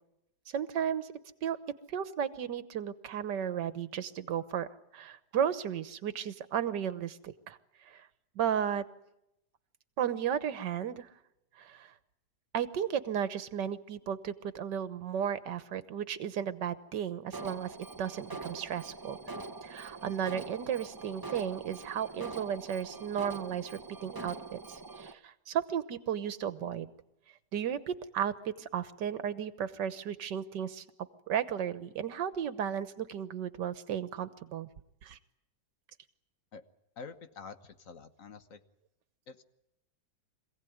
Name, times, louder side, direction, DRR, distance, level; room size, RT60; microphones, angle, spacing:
voice 1, 0.5-1.1 1.4-1.6 1.9-4.7 4.9-8.1 8.4-8.9 10.0-11.1 11.6-11.9 12.5-19.2 19.6-26.9 27.5-30.9 31.3-34.7 35.0-35.2, right 9 dB, 75° right, 13 dB, 1.7 m, -34 dB
Alarm, 17.3-25.1, right 3 dB, 20° right, 0.6 m, -44 dB
voice 2, 37.0-38.6 39.3-39.4, left 5 dB, 50° left, 9 dB, 1.5 m, -47 dB
26.0 x 17.0 x 9.4 m, 0.86 s
omnidirectional pair, 1.9 m